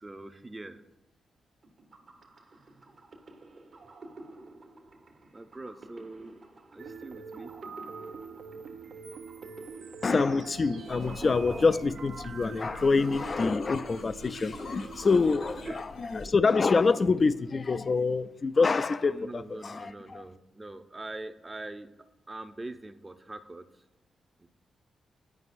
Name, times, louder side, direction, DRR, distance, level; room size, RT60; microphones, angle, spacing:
voice 1, 0.0-0.8 5.3-6.4 6.7-7.5 13.2-13.8 15.7-15.8 19.1-21.9 22.3-23.6 24.4-24.5, right 2 dB, 25° right, 0.6 m, -43 dB
sound 1, 1.6-12.4, right 2 dB, 55° right, 1.0 m, -51 dB
sound 2, 6.8-16.1, right 5 dB, 70° right, 0.6 m, -45 dB
voice 2, 10.0-20.2, left 4 dB, 45° left, 0.3 m, -26 dB
sound 3, 10.9-16.3, left 1 dB, 80° left, 1.1 m, -46 dB
9.7 x 4.9 x 2.6 m
supercardioid pair, 60°, 0 cm